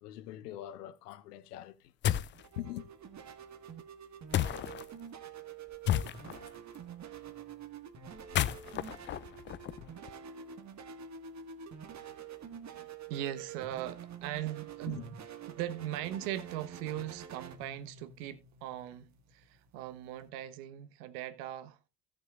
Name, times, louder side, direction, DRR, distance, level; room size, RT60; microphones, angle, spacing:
voice 1, 0.0-2.2 2.6-2.9 14.9-15.0, left 12 dB, 75° left, 0.9 m, -43 dB
Rock Smash, 2.0-2.4 4.3-4.8 5.8-6.5 8.2-10.1, left 11 dB, 25° left, 0.4 m, -32 dB
sound 1, 2.1-20.3, right 7 dB, 35° right, 1.6 m, -47 dB
voice 2, 12.7-15.2 15.5-21.8, right 12 dB, 65° right, 1.2 m, -39 dB
17.0 x 6.7 x 2.4 m
hypercardioid pair, 65°, 47 cm